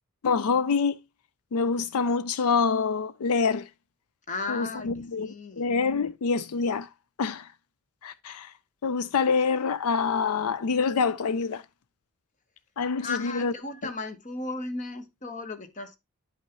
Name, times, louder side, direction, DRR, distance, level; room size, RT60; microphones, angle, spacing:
voice 1, 0.2-1.0 1.5-3.7 4.5-6.9 7.2-7.5 8.0-8.5 8.8-11.6 12.8-13.5, left 5 dB, 80° left, 0.5 m, -26 dB
voice 2, 4.3-5.7 13.0-16.0, left 3 dB, 35° left, 1.1 m, -35 dB
11.0 x 5.4 x 3.0 m
head